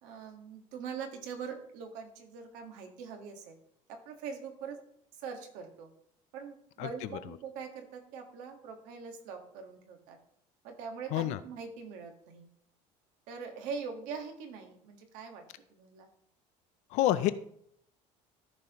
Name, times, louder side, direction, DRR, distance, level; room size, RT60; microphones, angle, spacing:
voice 1, 0.0-3.6 3.9-4.8 5.2-5.9 6.3-10.2 10.6-12.5 13.3-15.4 15.7-16.1, right 6 dB, 75° right, 4 dB, 1.5 m, -43 dB
voice 2, 16.9-17.3, left 14 dB, 60° left, 14 dB, 0.4 m, -26 dB
14.0 x 5.6 x 3.0 m, 0.69 s
cardioid pair, 165°, 13 cm